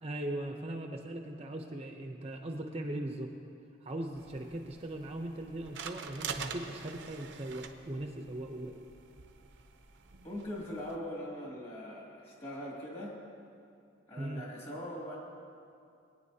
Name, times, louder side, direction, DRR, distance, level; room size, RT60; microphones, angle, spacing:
voice 1, 0.0-3.3 3.8-8.7 14.2-14.4, right 1 dB, 35° right, 3 dB, 0.7 m, -39 dB
sound 1, 4.1-11.0, right 6 dB, 70° right, 0.7 m, -46 dB
voice 2, 10.2-13.2 14.1-15.2, left 1 dB, 30° left, -4 dB, 2.5 m, -41 dB
21.0 x 9.3 x 2.8 m, 2.4 s
head